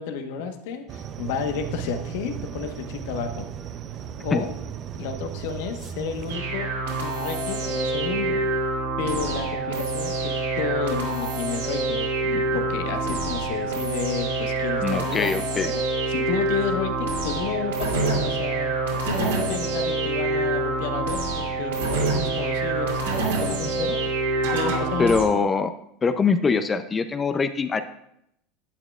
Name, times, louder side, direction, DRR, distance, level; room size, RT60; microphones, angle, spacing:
voice 1, 0.0-3.5 4.2-4.6 4.9-8.4 9.0-15.8 16.1-18.8 19.0-24.0 24.5-25.2, left 6 dB, 70° left, 6 dB, 1.2 m, -31 dB
sound 1, 0.9-6.4, right 9 dB, 45° right, 0.6 m, -36 dB
sound 2, 6.3-25.2, right 3 dB, 85° right, 3.0 m, -26 dB
voice 2, 14.8-15.7 25.0-25.7 26.0-27.8, left 5 dB, 25° left, 9 dB, 0.6 m, -23 dB
11.5 x 9.0 x 2.4 m, 0.78 s
hypercardioid pair, 85°, 0 cm